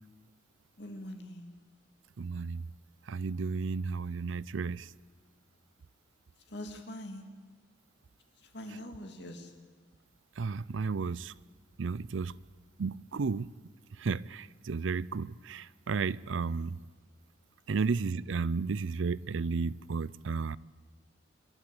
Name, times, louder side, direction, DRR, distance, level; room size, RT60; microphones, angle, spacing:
voice 1, 0.8-1.6 6.5-7.3 8.5-9.5 16.6-16.7 17.7-17.8, left 1 dB, 60° left, 2.6 m, -43 dB
voice 2, 2.2-2.6 3.1-4.9 10.4-11.3 11.8-12.3 12.8-13.5 14.0-16.8 17.7-20.6, right 4 dB, 85° right, 0.5 m, -33 dB
26.5 x 12.5 x 8.5 m
head